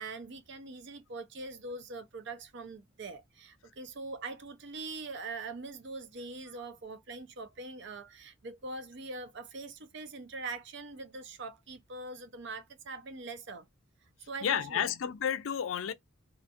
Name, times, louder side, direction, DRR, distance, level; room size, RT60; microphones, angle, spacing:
voice 1, 0.0-13.7 14.3-14.9, right 3 dB, 60° right, 0.6 m, -43 dB
voice 2, 14.4-15.9, left 8 dB, 75° left, 0.4 m, -31 dB
2.5 x 2.5 x 2.5 m
head